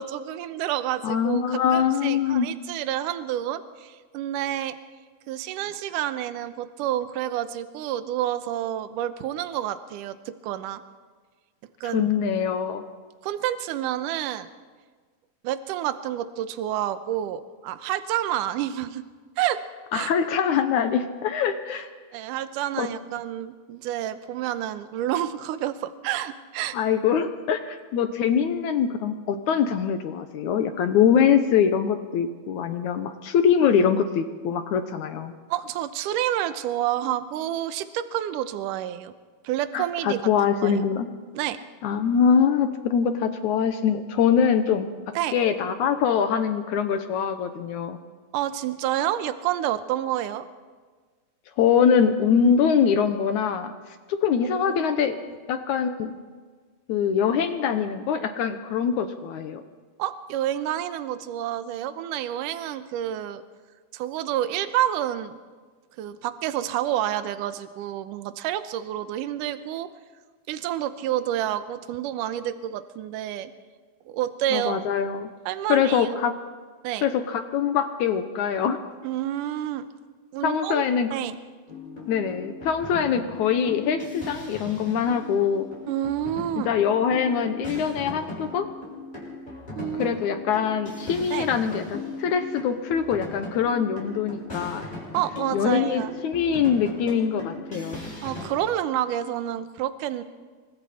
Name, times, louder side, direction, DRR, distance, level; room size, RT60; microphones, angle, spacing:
voice 1, 0.0-4.8 5.3-10.8 11.8-12.1 13.2-14.5 15.4-19.0 19.4-19.6 19.9-20.1 22.1-26.8 35.5-39.1 39.4-40.2 40.6-40.8 41.3-41.6 45.2-45.4 48.3-50.5 54.4-54.9 55.3-55.4 60.0-63.4 63.9-65.4 66.0-69.9 70.5-73.5 74.1-74.8 75.5-76.2 76.8-77.1 79.0-79.9 80.3-81.4 85.9-86.7 89.8-90.1 91.3-91.5 95.1-96.1 98.2-100.2, right 12 dB, 75° right, 11 dB, 2.3 m, -29 dB
voice 2, 1.0-2.5 11.8-12.8 19.9-21.9 22.8-22.9 26.7-35.3 39.7-41.1 41.8-44.9 45.3-48.0 51.6-53.7 54.1-55.2 55.5-56.2 56.9-59.6 74.5-75.3 75.7-76.3 77.0-78.8 80.4-81.1 82.1-85.7 86.7-88.7 90.0-94.8 95.5-98.0, left 7 dB, 70° left, 8 dB, 2.0 m, -23 dB
sound 1, 81.7-98.5, left 2 dB, 10° left, 7.3 m, -38 dB
27.0 x 24.5 x 4.3 m, 1.5 s
omnidirectional pair, 4.2 m